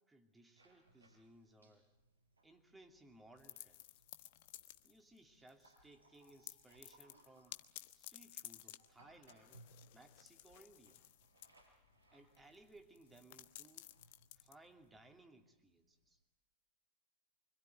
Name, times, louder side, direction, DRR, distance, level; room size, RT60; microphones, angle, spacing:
voice 1, 0.0-1.8 2.4-3.9 4.8-7.6 7.9-9.6 9.9-11.0 12.1-13.9 14.3-16.2, right 2 dB, 10° right, 5 dB, 2.8 m, -63 dB
sound 1, 0.5-16.2, right 1 dB, 80° right, 6.0 m, -70 dB
sound 2, 3.4-5.2 5.5-5.8 6.1-15.2, left 15 dB, 50° left, 1.1 m, -56 dB
25.5 x 25.0 x 9.3 m, 0.99 s
figure-of-eight pair, 90°, 0 cm